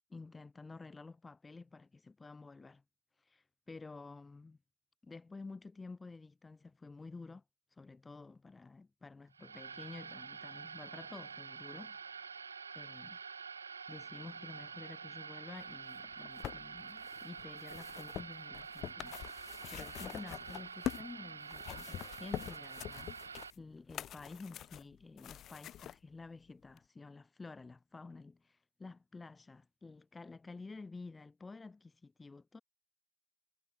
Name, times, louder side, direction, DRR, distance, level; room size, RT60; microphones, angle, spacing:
voice 1, 0.1-2.8 3.3-4.6 5.0-7.4 7.8-12.3 12.7-13.2 13.9-32.6, left 3 dB, 15° left, 0.9 m, -51 dB
sound 1, 9.3-23.5, right 5 dB, 90° right, 0.8 m, -47 dB
sound 2, 16.0-21.1 21.4-26.0 26.8-26.9, left 11 dB, 35° left, 0.5 m, -45 dB
hypercardioid pair, 90°, 0 cm